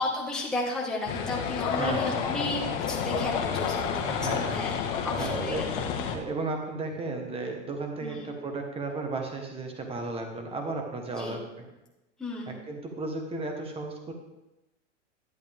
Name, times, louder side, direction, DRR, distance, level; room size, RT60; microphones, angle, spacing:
voice 1, 0.0-5.6 8.0-8.3 11.2-11.4 12.2-12.6, left 2 dB, ahead, -6 dB, 1.6 m, -33 dB
sound 1, 1.1-6.2, left 7 dB, 45° left, 1.3 m, -30 dB
voice 2, 1.7-2.2 4.0-4.7 5.2-5.9 6.1-11.5 12.5-14.1, right 3 dB, 15° right, 3 dB, 1.4 m, -34 dB
11.0 x 8.2 x 3.6 m, 0.98 s
hypercardioid pair, 135°, 37 cm